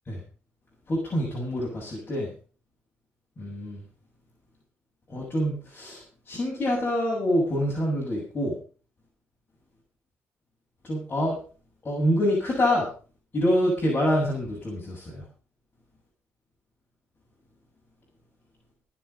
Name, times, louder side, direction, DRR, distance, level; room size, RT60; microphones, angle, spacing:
voice 1, 0.9-2.3 3.4-3.8 5.1-6.0 6.3-8.6 10.8-11.3 11.8-12.9 13.3-15.2, equal, 35° left, -3 dB, 7.6 m, -26 dB
21.5 x 7.7 x 5.4 m, 0.38 s
cardioid pair, 85°, 5 cm